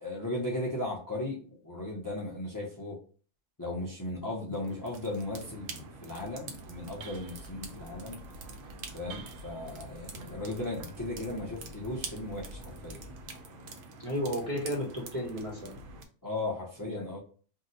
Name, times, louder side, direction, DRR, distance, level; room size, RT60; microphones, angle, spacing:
voice 1, 0.0-3.0 3.6-8.2 8.9-13.0 16.2-17.2, left 2 dB, 25° left, -3 dB, 0.4 m, -36 dB
sound 1, 4.5-16.0, right 3 dB, 85° right, 1.0 m, -46 dB
sound 2, 6.5-13.4, right 1 dB, 65° right, 0.9 m, -49 dB
voice 2, 14.0-15.8 16.8-17.1, equal, 35° right, -2 dB, 0.7 m, -33 dB
2.7 x 2.1 x 3.9 m, 0.40 s
omnidirectional pair, 1.4 m